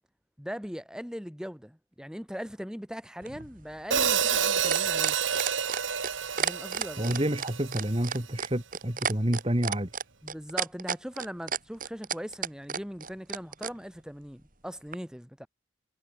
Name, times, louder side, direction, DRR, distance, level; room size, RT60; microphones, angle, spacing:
voice 1, 0.4-5.2 6.4-7.2 10.2-15.5, equal, 5° right, 2.4 m, -40 dB
sound 1, 3.2-13.7 14.9-15.0, right 6 dB, 45° right, 4.8 m, -32 dB
Hi-hat, 3.9-8.1, right 7 dB, 85° right, 2.6 m, -28 dB
voice 2, 7.0-9.9, right 1 dB, 30° right, 2.3 m, -28 dB
head